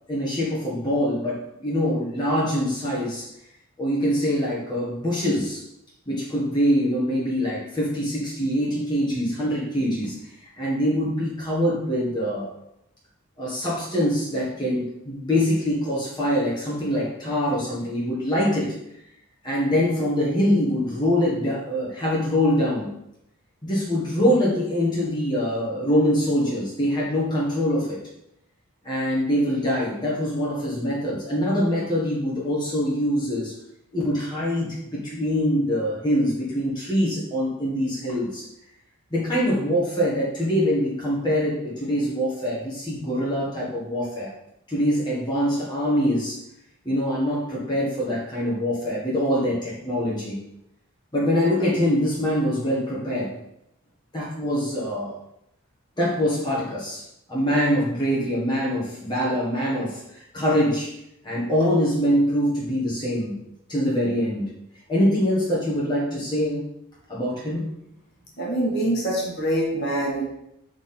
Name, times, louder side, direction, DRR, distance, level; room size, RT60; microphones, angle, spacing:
voice 1, 0.1-3.3 3.8-5.6 6.1-10.1 10.5-12.5 13.4-18.7 19.4-22.9 23.6-28.0 28.8-33.5 33.9-38.4 39.1-44.3 44.7-46.4 46.8-50.4 51.1-53.4 54.1-55.1 56.0-60.9 61.2-63.4 63.7-64.5 64.9-66.6 67.1-67.7, equal, 20° left, -7 dB, 1.4 m, -24 dB
voice 2, 68.4-70.3, right 1 dB, 45° left, -3 dB, 1.5 m, -24 dB
5.8 x 3.8 x 4.4 m, 0.81 s
head